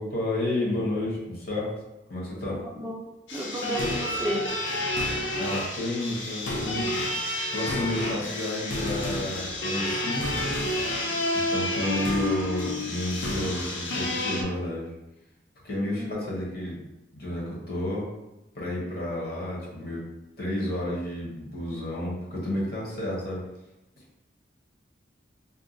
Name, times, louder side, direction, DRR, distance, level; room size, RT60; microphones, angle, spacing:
voice 1, 0.0-1.7 2.1-2.6 5.4-6.9 7.5-10.6 11.5-14.9 15.6-16.8 17.1-18.1 18.5-20.0 20.4-23.4, left 1 dB, 55° left, -4 dB, 1.0 m, -31 dB
sound 1, 3.3-14.4, left 1 dB, 75° left, 0.6 m, -29 dB
voice 2, 3.3-4.5 15.9-16.2, equal, 10° right, -3 dB, 0.5 m, -32 dB
2.7 x 2.2 x 3.8 m, 0.96 s
head